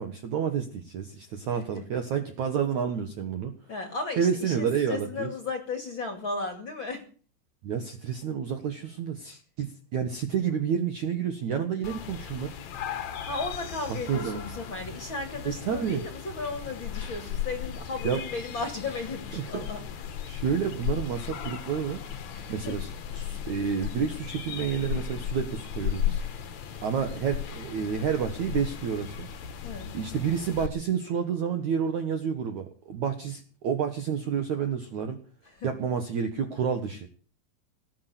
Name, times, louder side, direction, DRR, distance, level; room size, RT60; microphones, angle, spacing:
voice 1, 0.0-3.5 4.2-5.3 7.6-12.5 14.1-14.4 15.4-16.0 18.0-18.2 19.3-19.7 20.3-22.0 22.5-26.2 26.8-29.3 29.9-35.2 35.6-37.1, right 7 dB, 60° right, 6 dB, 2.0 m, -29 dB
voice 2, 3.7-7.0 13.3-19.8 22.3-22.7 29.6-29.9 35.6-35.7, left 3 dB, 35° left, 6 dB, 2.2 m, -35 dB
sound 1, 11.8-30.7, left 9 dB, 60° left, 2.0 m, -36 dB
18.5 x 8.6 x 8.3 m, 0.40 s
omnidirectional pair, 5.1 m